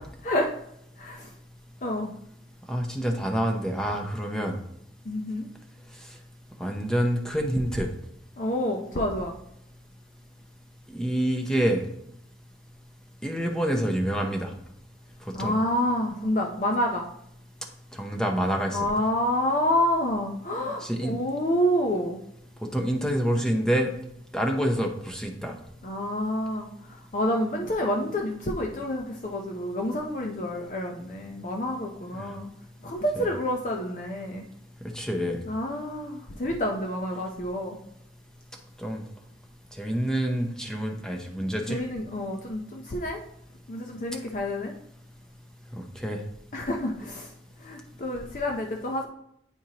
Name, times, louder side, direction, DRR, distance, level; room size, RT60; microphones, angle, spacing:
voice 1, 1.0-1.3 1.8-2.1 5.0-5.5 8.4-9.3 15.3-17.0 18.7-22.2 25.8-32.5 32.8-34.5 35.5-37.8 41.7-43.2 43.7-44.7 46.5-47.3 47.6-49.1, left 1 dB, 45° left, 1 dB, 0.5 m, -28 dB
voice 2, 2.7-4.6 6.6-7.9 10.9-11.8 13.2-14.5 15.4-15.6 17.9-19.0 20.8-21.2 22.7-23.9 24.3-25.6 32.2-32.3 33.2-33.3 34.9-35.4 38.8-39.0 39.8-41.8 45.8-46.2, equal, 5° left, 2 dB, 0.7 m, -27 dB
8.8 x 4.4 x 2.8 m, 0.76 s
head